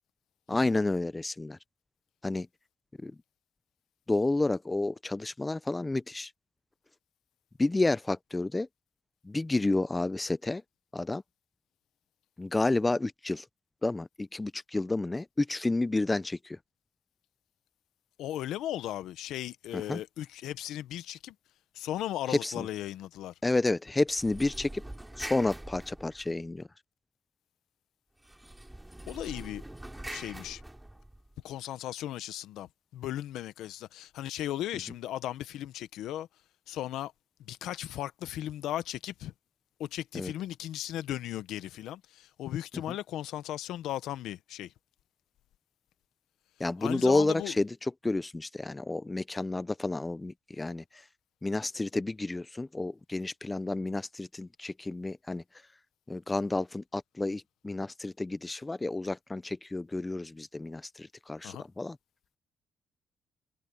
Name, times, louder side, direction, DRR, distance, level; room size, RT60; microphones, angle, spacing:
voice 1, 0.5-1.6 2.2-2.5 3.0-3.1 4.1-6.3 7.6-8.7 9.2-10.6 10.9-11.2 12.4-13.4 13.8-16.6 19.7-20.0 22.3-22.7 23.4-24.8 25.2-26.7 40.1-40.3 46.6-50.8 51.4-55.4 56.1-62.0, left 2 dB, 15° left, 0.6 m, -30 dB
voice 2, 18.2-21.3 21.7-23.3 29.1-29.6 30.1-30.6 31.4-36.3 36.7-37.1 37.5-39.3 39.8-44.7 46.8-47.6 61.4-61.7, left 13 dB, 85° left, 1.0 m, -36 dB
sound 1, 24.1-26.6 28.2-31.4, right 1 dB, 10° right, 4.1 m, -44 dB
cardioid pair, 90°, 0 cm